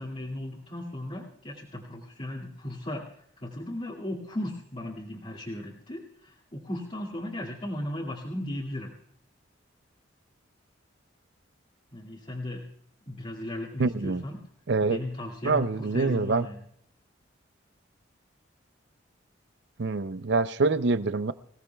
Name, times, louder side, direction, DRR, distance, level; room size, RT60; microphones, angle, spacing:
voice 1, 0.0-8.9 11.9-12.7 13.1-14.4 14.8-16.6, left 1 dB, 35° left, -7 dB, 2.2 m, -36 dB
voice 2, 13.8-14.2 14.7-15.0 15.4-16.5 19.8-21.3, right 3 dB, 60° right, 13 dB, 0.6 m, -25 dB
25.5 x 17.0 x 2.3 m, 0.68 s
head